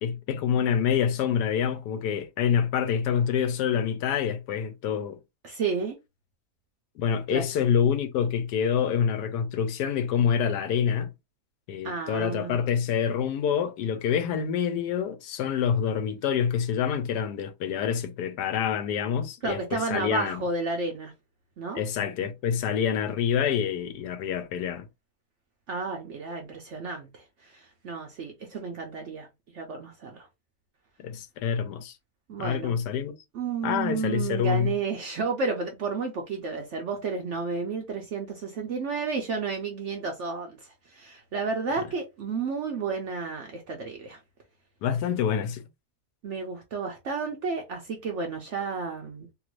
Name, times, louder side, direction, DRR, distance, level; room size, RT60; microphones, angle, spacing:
voice 1, 0.0-5.2 7.0-11.1 11.7-20.4 21.7-24.9 31.0-32.0 32.4-33.2 33.6-34.7 44.8-45.6, left 8 dB, 80° left, 1.2 m, -26 dB
voice 2, 5.4-6.0 7.3-7.4 11.8-12.6 19.4-21.1 21.6-21.8 25.7-29.3 29.5-30.2 32.3-32.7 33.3-44.2 46.2-49.3, right 4 dB, 65° right, 0.7 m, -32 dB
3.0 x 2.5 x 3.0 m
omnidirectional pair, 1.8 m